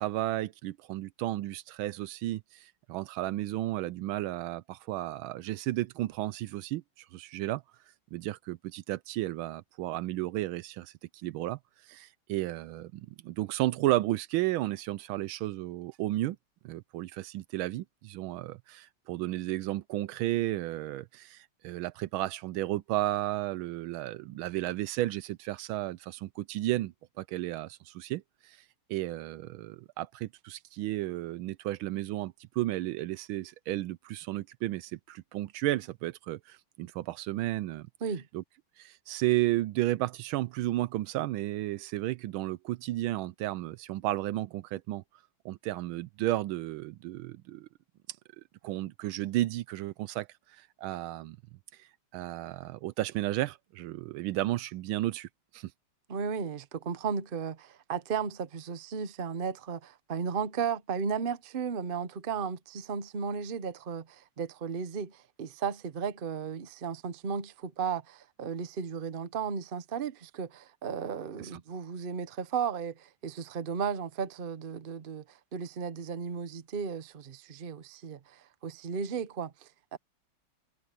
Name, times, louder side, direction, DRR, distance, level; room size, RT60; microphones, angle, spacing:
voice 1, 0.0-7.6 8.1-10.9 11.2-11.6 11.9-16.4 16.6-28.6 28.9-37.9 38.3-38.4 38.8-45.0 45.4-47.7 48.6-50.3 50.5-51.4 51.8-55.3 55.5-55.7 71.4-71.5, right 16 dB, 75° right, 1.3 m, -33 dB
voice 2, 56.1-75.2 75.5-80.0, right 6 dB, 60° right, 0.5 m, -35 dB
omnidirectional pair, 2.4 m